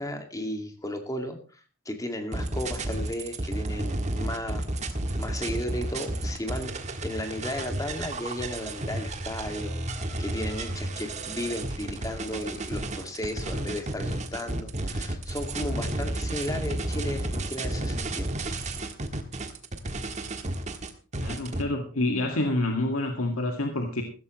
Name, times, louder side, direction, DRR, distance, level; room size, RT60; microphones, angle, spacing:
voice 1, 0.0-1.4 1.9-4.7 5.2-6.7 7.0-18.3, left 1 dB, 15° left, 5 dB, 2.2 m, -34 dB
sound 1, 2.3-21.6, right 1 dB, 35° right, 1.5 m, -32 dB
voice 2, 21.2-24.0, left 2 dB, 85° left, 3 dB, 2.0 m, -27 dB
15.5 x 13.5 x 3.1 m, 0.37 s
head